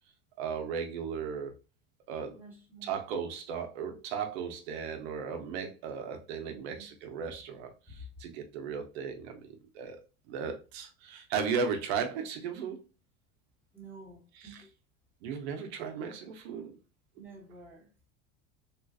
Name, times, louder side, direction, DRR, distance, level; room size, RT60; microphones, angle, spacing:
voice 1, 0.4-1.5 2.1-2.4 2.8-10.0 10.3-12.8 14.3-14.6 15.2-16.8, right 6 dB, 80° right, 0.8 m, -36 dB
voice 2, 2.3-3.0 6.5-6.9 7.2-7.3 7.9-8.1 13.7-14.7 17.2-17.9, right 2 dB, 5° right, 1.2 m, -50 dB
3.7 x 2.4 x 2.5 m
supercardioid pair, 125°, 32 cm